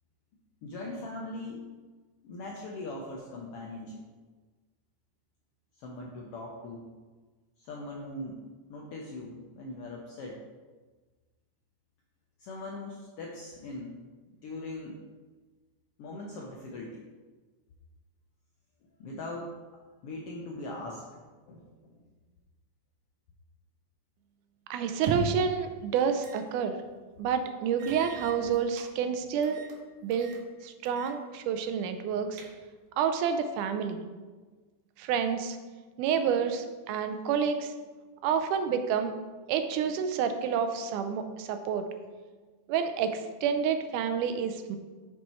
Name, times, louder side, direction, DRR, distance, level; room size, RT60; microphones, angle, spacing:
voice 1, 0.6-1.6 2.2-4.0 5.8-6.9 7.6-8.4 8.7-10.4 12.4-14.0 14.3-15.0 16.0-17.1 19.0-19.5 19.7-22.0, left 2 dB, 80° left, -2 dB, 1.3 m, -41 dB
voice 2, 24.7-26.8 27.2-29.7 30.0-30.3 30.6-32.4 33.0-34.0 35.0-35.6 36.0-37.7 38.2-39.1 39.5-41.9 42.7-44.8, right 7 dB, 85° right, 8 dB, 2.1 m, -29 dB
sound 1, 24.9-25.5 26.2-26.5 26.8-26.9 27.8-28.9 29.4-29.8 30.1-30.4 30.9-31.2 31.5-31.6 32.1-32.9, right 3 dB, 70° right, 1.7 m, -38 dB
6.1 x 5.8 x 4.4 m, 1.3 s
omnidirectional pair, 3.5 m